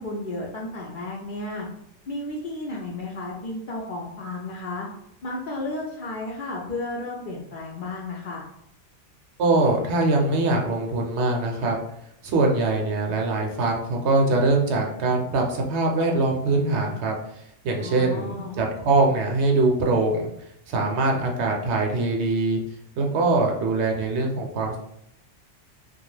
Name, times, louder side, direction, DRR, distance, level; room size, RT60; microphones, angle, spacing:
voice 1, 0.0-1.7 2.1-4.9 5.2-8.4 17.8-18.6, left 2 dB, 60° left, -3 dB, 0.6 m, -33 dB
voice 2, 9.4-11.8 12.2-17.1 17.6-20.3 20.7-22.6 23.0-24.8, right 2 dB, 70° right, 0 dB, 0.8 m, -22 dB
2.4 x 2.3 x 3.1 m, 0.75 s
omnidirectional pair, 1.2 m